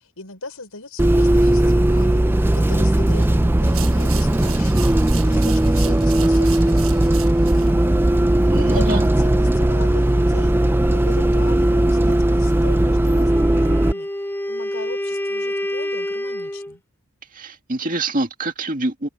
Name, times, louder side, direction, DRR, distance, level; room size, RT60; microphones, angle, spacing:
voice 1, 0.0-4.8 5.1-7.9 8.5-14.1 14.5-16.8, left 3 dB, 85° left, 6.0 m, -38 dB
Bus, 1.0-13.9, right 1 dB, 10° right, 0.4 m, -17 dB
sound 1, 3.6-7.7, right 13 dB, 70° right, 1.1 m, -37 dB
voice 2, 8.5-9.1 17.3-19.1, right 2 dB, 40° right, 2.2 m, -25 dB
Wind instrument woodwind instrument, 13.2-16.7, left 1 dB, 10° left, 2.5 m, -27 dB
open air
head